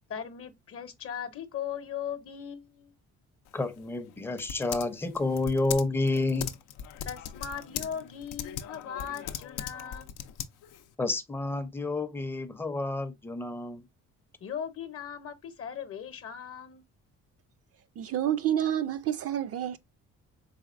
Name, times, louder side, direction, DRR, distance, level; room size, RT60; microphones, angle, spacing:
voice 1, 0.1-2.9 7.1-10.1 14.4-16.8, left 8 dB, 50° left, 0.7 m, -38 dB
Typing, 3.5-10.9, left 10 dB, 90° left, 0.5 m, -40 dB
voice 2, 3.5-6.5 11.0-13.9, left 2 dB, 10° left, 0.5 m, -30 dB
voice 3, 18.0-19.8, right 11 dB, 50° right, 0.4 m, -28 dB
4.1 x 3.1 x 2.4 m
cardioid pair, 90°, 30 cm